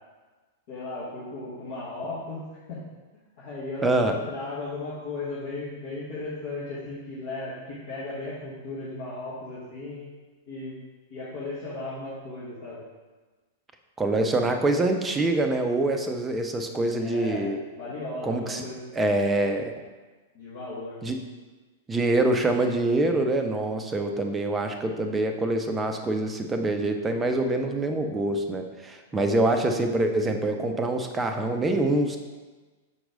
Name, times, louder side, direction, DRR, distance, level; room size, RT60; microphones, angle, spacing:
voice 1, 0.7-2.4 2.7-2.8 3.4-10.1 10.5-10.8 11.1-12.8 17.0-17.5 17.7-18.8 20.3-21.0, left 2 dB, 50° left, -10 dB, 1.7 m, -36 dB
voice 2, 3.8-4.2 14.0-17.6 18.2-18.6 18.9-19.7 21.0-21.2 21.9-32.2, right 2 dB, 15° right, 5 dB, 0.6 m, -25 dB
6.1 x 4.6 x 3.8 m, 1.3 s
figure-of-eight pair, 100°, 0 cm